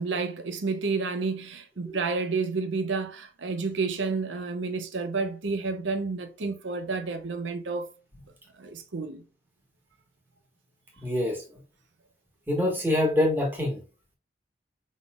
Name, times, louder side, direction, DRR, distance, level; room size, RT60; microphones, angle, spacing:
voice 1, 0.0-7.9 8.6-9.2, right 4 dB, 90° right, 0.7 m, -30 dB
voice 2, 11.0-11.4 12.5-13.8, left 1 dB, 10° right, 1.5 m, -25 dB
5.2 x 4.1 x 2.4 m
head